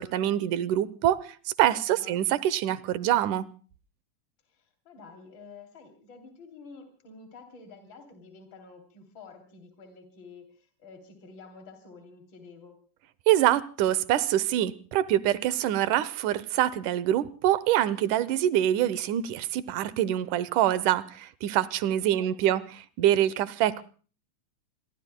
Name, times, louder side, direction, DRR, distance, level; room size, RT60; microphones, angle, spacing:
voice 1, 0.0-3.5 13.3-22.6 23.0-23.8, right 12 dB, 90° right, 17 dB, 2.4 m, -25 dB
voice 2, 1.9-2.2 4.4-12.8 22.0-22.6, left 4 dB, 40° left, 5 dB, 3.6 m, -50 dB
28.5 x 22.0 x 2.2 m, 0.40 s
omnidirectional pair, 3.5 m